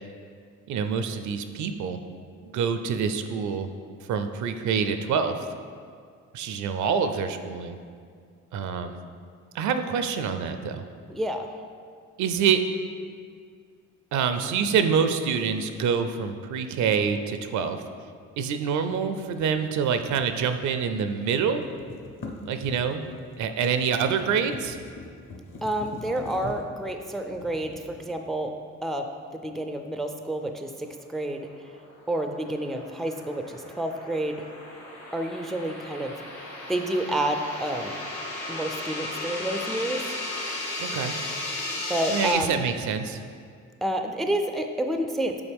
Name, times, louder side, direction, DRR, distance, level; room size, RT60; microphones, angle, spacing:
voice 1, 0.7-2.0 2.4-3.7 4.1-5.5 6.3-7.8 8.5-9.0 9.5-10.8 12.2-12.6 14.1-17.8 18.4-21.6 22.5-23.0 23.4-24.8 40.8-41.1 42.1-43.2, right 6 dB, 75° right, 8 dB, 0.5 m, -26 dB
voice 2, 11.1-11.5 25.6-28.5 28.8-31.5 32.1-34.5 35.1-36.1 36.4-38.0 38.5-40.0 41.9-42.5 43.8-45.4, right 1 dB, ahead, 5 dB, 0.3 m, -29 dB
sound 1, 18.8-21.0 21.3-28.6, left 2 dB, 40° left, 0.8 m, -43 dB
sound 2, 31.9-42.3, left 2 dB, 90° left, 1.3 m, -35 dB
7.0 x 4.1 x 3.5 m, 2.2 s
cardioid pair, 90°, 30 cm